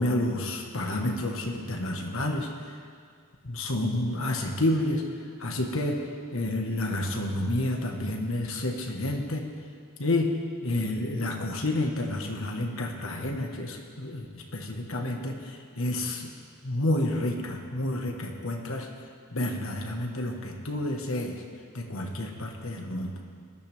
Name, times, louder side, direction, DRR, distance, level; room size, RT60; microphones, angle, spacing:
voice 1, 0.0-2.5 3.4-5.0 5.4-6.0 6.3-9.5 10.0-10.3 10.6-16.3 16.6-18.9 19.3-21.4 21.7-23.2, left 1 dB, 70° left, 2 dB, 1.6 m, -29 dB
20.0 x 13.0 x 3.6 m, 2.2 s
head